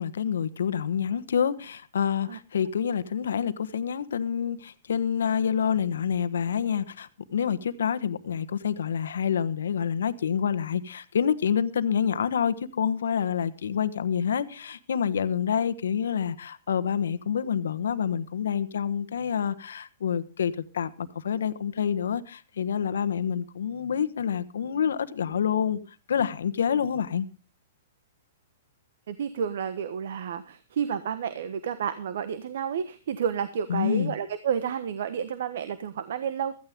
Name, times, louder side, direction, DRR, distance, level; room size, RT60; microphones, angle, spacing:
voice 1, 0.0-25.8 26.1-27.3 33.7-34.1, left 8 dB, 75° left, 1.2 m, -27 dB
voice 2, 29.1-36.5, right 8 dB, 65° right, 1.2 m, -30 dB
16.0 x 14.5 x 3.6 m
hypercardioid pair, 120°, 0 cm